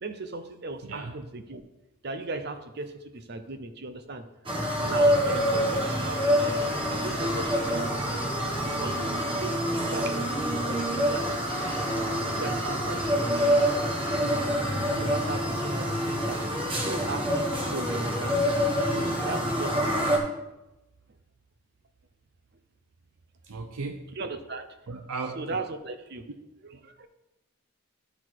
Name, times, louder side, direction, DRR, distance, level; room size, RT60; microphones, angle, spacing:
voice 1, 0.0-1.6 2.0-4.3 4.8-6.6 6.9-12.0 12.3-13.6 14.1-16.4 16.8-18.4 18.8-19.9 24.1-24.7 25.3-26.3 26.6-27.1, right 3 dB, 50° right, 9 dB, 0.6 m, -38 dB
voice 2, 0.8-1.2 23.5-24.0 24.9-25.5, right 4 dB, 85° right, 4 dB, 0.6 m, -36 dB
sound 1, 4.5-20.2, equal, 25° right, 1.2 m, -26 dB
12.0 x 4.2 x 4.5 m, 0.95 s
head